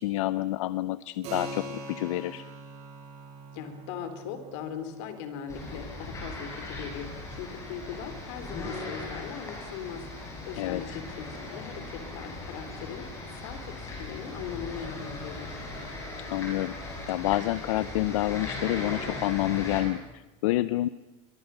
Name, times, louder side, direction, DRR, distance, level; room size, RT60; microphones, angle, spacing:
voice 1, 0.0-2.4 10.5-11.0 16.2-16.7 17.1-20.9, left 16 dB, 85° left, 16 dB, 0.7 m, -28 dB
Keyboard (musical), 1.2-11.4, right 2 dB, 40° right, 7.6 m, -46 dB
voice 2, 3.5-10.0 10.4-13.1 13.3-15.6, left 8 dB, 65° left, 9 dB, 3.4 m, -40 dB
sound 1, 5.5-19.8, left 2 dB, 20° left, 6.9 m, -38 dB
23.5 x 22.5 x 6.9 m, 1.1 s
supercardioid pair, 165°, 16 cm